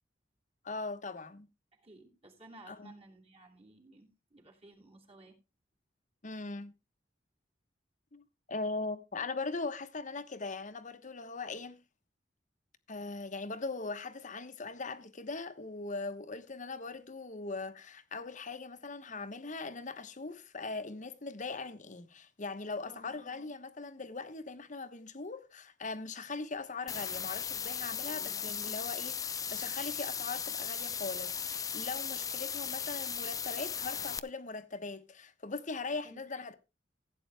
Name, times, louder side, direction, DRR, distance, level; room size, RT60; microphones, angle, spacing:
voice 1, 0.6-1.5 2.7-2.9 6.2-6.7 8.1-11.8 12.9-36.5, left 3 dB, 45° left, 1.2 m, -40 dB
voice 2, 1.8-5.4 22.9-23.2 28.0-28.4 36.0-36.2, right 2 dB, 35° right, 3.0 m, -56 dB
sound 1, 26.9-34.2, left 7 dB, 20° left, 0.5 m, -37 dB
15.5 x 8.7 x 3.4 m
head